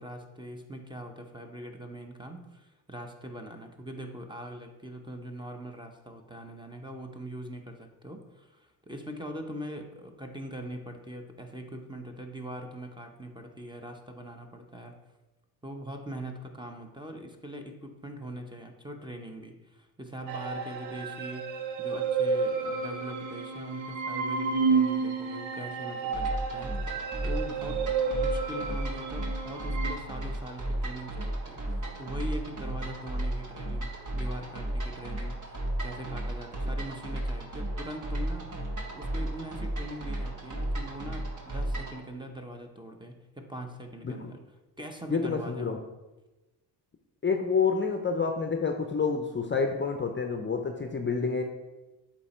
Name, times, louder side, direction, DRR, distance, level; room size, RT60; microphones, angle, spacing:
voice 1, 0.0-15.0 15.6-38.5 38.9-44.4 44.8-45.8, right 1 dB, 10° right, 4 dB, 0.8 m, -42 dB
sound 1, 20.3-30.0, right 5 dB, 80° right, 0.8 m, -31 dB
sound 2, 26.1-42.0, right 1 dB, 45° right, 1.5 m, -34 dB
voice 2, 45.1-45.8 47.2-51.4, left 5 dB, 25° left, 4 dB, 0.6 m, -28 dB
8.1 x 3.0 x 4.3 m, 1.1 s
supercardioid pair, 60°, 43 cm